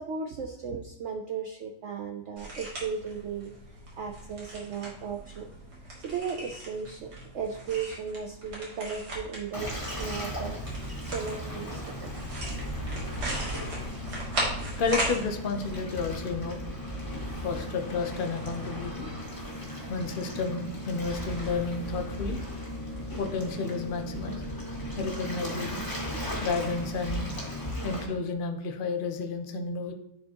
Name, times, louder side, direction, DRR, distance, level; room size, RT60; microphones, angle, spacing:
voice 1, 0.0-5.5 5.8-10.6 11.0-12.1, right 6 dB, 90° right, 4 dB, 0.6 m, -36 dB
sound 1, 2.4-15.2, right 1 dB, 65° right, 2.5 m, -37 dB
Waves surf, 9.5-28.0, equal, 10° left, 1.6 m, -36 dB
voice 2, 14.8-16.6 17.4-19.1 19.9-22.4 23.2-24.4 25.0-25.8 26.4-27.3 27.8-29.9, left 4 dB, 70° left, 5 dB, 0.5 m, -31 dB
11.0 x 4.3 x 2.9 m, 0.90 s
omnidirectional pair, 1.9 m